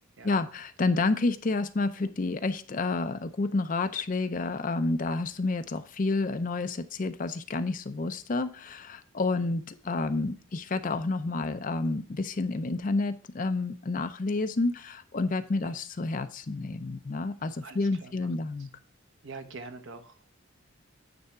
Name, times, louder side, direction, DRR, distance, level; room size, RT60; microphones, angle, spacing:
voice 1, 0.2-18.7, left 3 dB, 40° left, 10 dB, 0.5 m, -29 dB
voice 2, 17.6-18.3 18.6-18.7 19.2-20.3, right 3 dB, 60° right, 7 dB, 0.9 m, -45 dB
9.5 x 3.5 x 5.6 m, 0.40 s
head